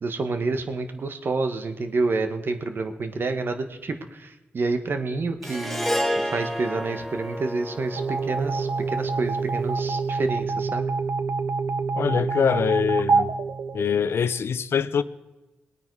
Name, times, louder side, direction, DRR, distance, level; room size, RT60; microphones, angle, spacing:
voice 1, 0.0-5.9 6.1-10.9, right 3 dB, 55° right, 7 dB, 1.4 m, -28 dB
Harp, 5.4-9.9, equal, 5° left, 1.4 m, -31 dB
sound 1, 8.0-14.4, right 4 dB, 75° right, 0.7 m, -26 dB
voice 2, 11.9-13.3 13.7-15.0, left 7 dB, 75° left, 15 dB, 0.6 m, -23 dB
20.5 x 9.0 x 4.7 m, 1.1 s
cardioid pair, 70°, 4 cm